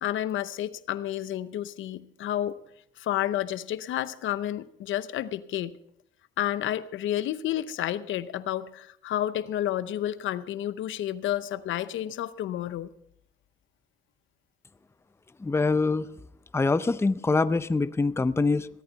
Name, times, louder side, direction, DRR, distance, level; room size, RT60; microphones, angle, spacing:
voice 1, 0.0-2.6 3.0-5.8 6.4-12.9, left 12 dB, 80° left, 15 dB, 0.8 m, -30 dB
voice 2, 15.4-16.1 16.5-18.7, left 3 dB, 15° left, 14 dB, 0.5 m, -24 dB
17.5 x 13.5 x 4.0 m, 0.75 s
cardioid pair, 90°, 20 cm